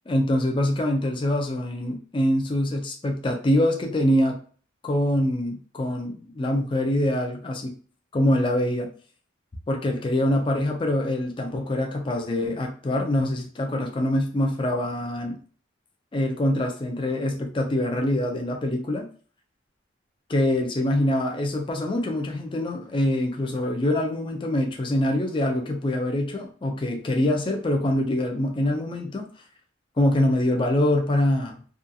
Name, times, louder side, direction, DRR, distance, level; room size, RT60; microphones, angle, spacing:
voice 1, 0.1-4.4 4.8-7.7 8.1-8.9 9.7-15.4 16.1-19.1 20.3-29.3 30.0-31.6, left 1 dB, 25° left, 2 dB, 0.4 m, -24 dB
2.4 x 2.3 x 2.6 m, 0.41 s
head